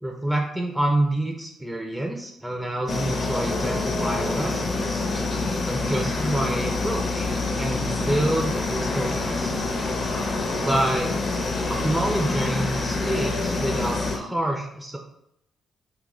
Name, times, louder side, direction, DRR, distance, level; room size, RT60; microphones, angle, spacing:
voice 1, 0.0-5.0 5.7-9.5 10.5-11.2 11.7-15.0, right 1 dB, 5° right, 2 dB, 0.4 m, -27 dB
sound 1, 2.9-14.2, left 3 dB, 45° left, 0.6 m, -26 dB
3.8 x 2.2 x 2.9 m, 0.78 s
cardioid pair, 90°, 0 cm